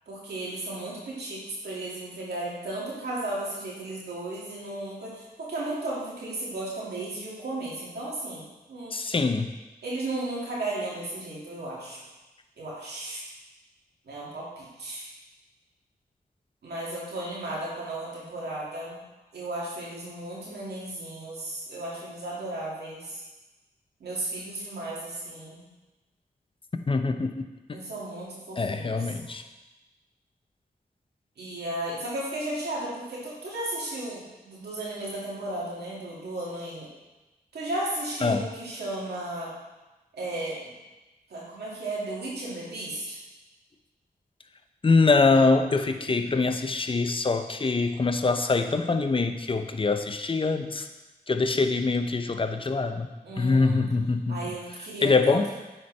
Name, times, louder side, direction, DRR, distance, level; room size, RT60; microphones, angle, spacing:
voice 1, 0.1-8.4 8.7-9.0 9.8-12.0 12.6-13.2 14.1-15.1 16.6-19.0 19.3-23.2 24.0-25.6 27.7-29.0 31.4-36.9 37.5-39.5 40.1-40.6 41.3-43.2 53.2-53.8 54.3-55.4, right 2 dB, 90° right, -5 dB, 1.9 m, -34 dB
voice 2, 8.9-9.5 26.9-27.3 28.6-29.4 38.2-38.5 44.8-50.9 51.3-53.1 53.4-54.4 55.0-55.5, left 3 dB, 35° left, 7 dB, 0.6 m, -24 dB
9.2 x 4.4 x 3.2 m, 1.1 s
cardioid pair, 50°, 16 cm